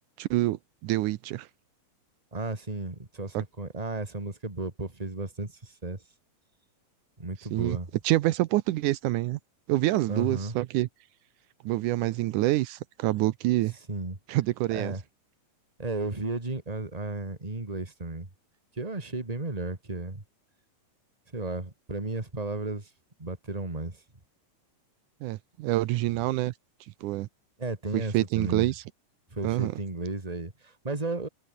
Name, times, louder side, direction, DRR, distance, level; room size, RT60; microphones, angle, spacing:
voice 1, 0.2-1.5 7.5-7.8 8.0-9.4 9.7-10.9 11.6-13.7 14.3-14.9 25.2-26.5 27.0-27.3 27.9-28.8 29.4-29.7, right 17 dB, 80° right, 2.2 m, -26 dB
voice 2, 2.3-6.0 7.2-7.9 10.1-10.5 13.9-14.2 14.7-15.0 15.8-18.3 18.8-20.2 21.3-22.9 23.2-24.0 27.6-28.7 29.3-31.3, right 2 dB, 10° right, 2.7 m, -34 dB
omnidirectional pair, 3.7 m